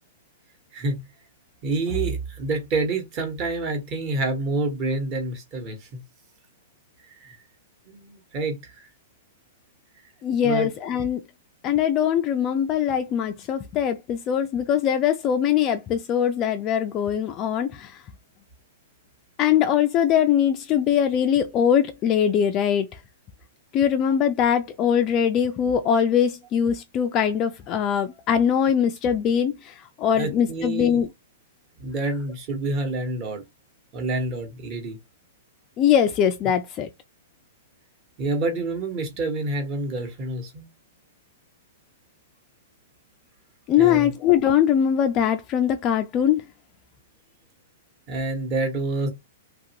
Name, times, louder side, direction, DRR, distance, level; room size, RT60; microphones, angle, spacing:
voice 1, 0.7-1.1 1.6-6.0 7.2-7.4 7.9-8.9 10.4-10.7 30.2-31.0 31.8-33.4 33.9-35.0 38.2-40.7 43.8-44.1 48.1-49.1, right 2 dB, 30° right, 1.1 m, -28 dB
voice 2, 10.2-11.2 11.6-18.0 19.4-22.9 23.7-31.1 35.8-36.9 43.7-46.4, left 9 dB, 25° left, 0.3 m, -22 dB
2.9 x 2.6 x 2.8 m
hypercardioid pair, 160°, 0 cm